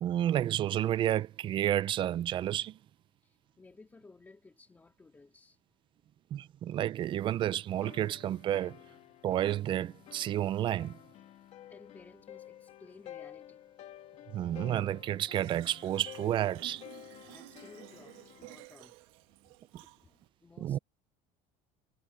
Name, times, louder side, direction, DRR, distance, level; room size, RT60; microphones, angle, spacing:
voice 1, 0.0-2.8 6.3-8.8 9.2-10.9 14.3-16.8 20.6-20.8, right 12 dB, 30° right, 0.4 m, -31 dB
voice 2, 3.2-5.6 11.7-13.6 17.3-19.0 19.8-20.8, left 3 dB, 10° left, 2.1 m, -56 dB
sound 1, 7.7-18.6, left 12 dB, 40° left, 2.3 m, -52 dB
Fill (with liquid), 15.3-20.3, right 22 dB, 85° right, 1.6 m, -54 dB
cardioid pair, 170°, 17 cm